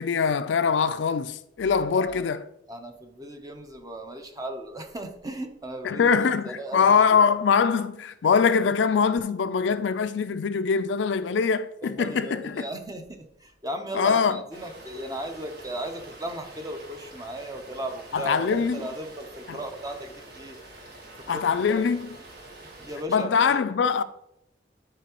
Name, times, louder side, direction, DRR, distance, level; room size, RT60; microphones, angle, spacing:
voice 1, 0.0-2.5 5.8-12.6 13.9-14.4 18.1-18.9 19.5-19.6 21.3-22.1 23.1-24.0, left 6 dB, 75° left, 0.4 m, -23 dB
voice 2, 2.7-6.9 11.8-20.6 21.3-21.8 22.8-24.0, right 1 dB, 20° right, 0.7 m, -36 dB
sound 1, 14.5-23.0, right 2 dB, 55° right, 1.5 m, -46 dB
11.5 x 4.6 x 3.0 m
head